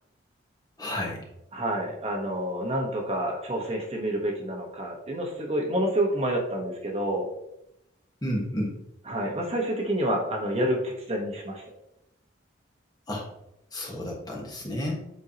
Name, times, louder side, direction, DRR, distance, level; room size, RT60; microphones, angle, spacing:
voice 1, 0.8-1.2 8.2-8.7 13.1-13.2 13.7-15.0, equal, 20° left, -1 dB, 1.3 m, -31 dB
voice 2, 1.5-7.3 9.1-11.6, right 1 dB, 30° right, 0 dB, 1.0 m, -28 dB
7.9 x 5.4 x 2.8 m, 0.82 s
head